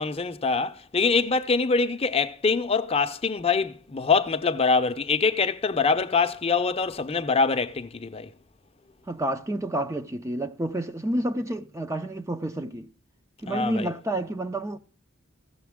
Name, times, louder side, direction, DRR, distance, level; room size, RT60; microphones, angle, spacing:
voice 1, 0.0-8.3 13.5-13.9, left 4 dB, 30° left, 0.6 m, -24 dB
voice 2, 9.1-12.9 13.4-14.8, right 1 dB, 15° right, 0.5 m, -29 dB
16.0 x 6.7 x 3.5 m
head